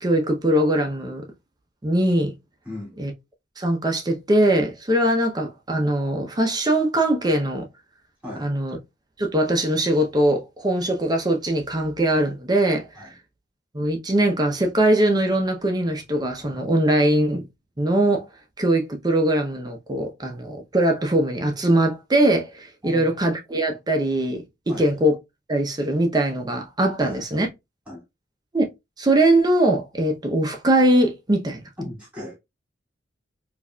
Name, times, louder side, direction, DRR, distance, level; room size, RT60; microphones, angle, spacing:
voice 1, 0.0-1.2 1.8-2.3 3.0-3.1 3.6-7.6 8.4-8.8 9.2-12.8 13.7-17.4 17.8-18.2 18.6-24.4 24.8-25.1 25.5-27.5 28.5-28.7 29.0-31.6, right 1 dB, 20° right, 0.6 m, -21 dB
voice 2, 2.6-3.0 8.2-8.5 12.9-13.1 22.8-23.1 24.7-24.9 27.0-27.2 27.9-28.0 31.8-32.4, left 1 dB, 5° right, 2.3 m, -36 dB
4.5 x 2.5 x 2.2 m
head